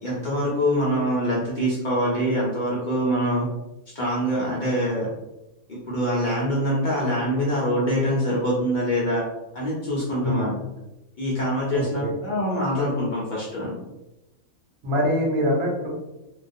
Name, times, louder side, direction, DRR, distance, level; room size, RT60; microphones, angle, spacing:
voice 1, 0.0-3.5 3.9-5.1 5.7-9.2 9.5-10.7 11.2-13.8, equal, 65° left, -6 dB, 0.4 m, -24 dB
voice 2, 11.7-12.1 14.8-15.9, equal, 85° right, -3 dB, 1.2 m, -24 dB
2.3 x 2.3 x 2.5 m, 0.96 s
omnidirectional pair, 1.5 m